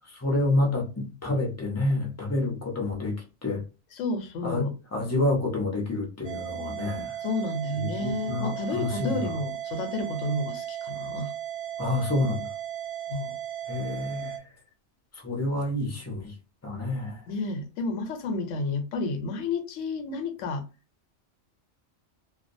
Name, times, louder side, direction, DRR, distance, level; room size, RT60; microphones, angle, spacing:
voice 1, 0.2-3.6 4.4-7.1 7.8-9.2 11.8-12.5 13.7-14.3 15.2-16.3 16.6-17.2, left 2 dB, 20° left, 0.4 m, -28 dB
voice 2, 3.9-4.7 7.2-11.3 13.1-13.4 17.3-20.6, left 2 dB, 85° left, 0.9 m, -31 dB
sound 1, 6.2-14.4, right 11 dB, 65° right, 0.8 m, -36 dB
2.3 x 2.1 x 2.5 m
omnidirectional pair, 1.3 m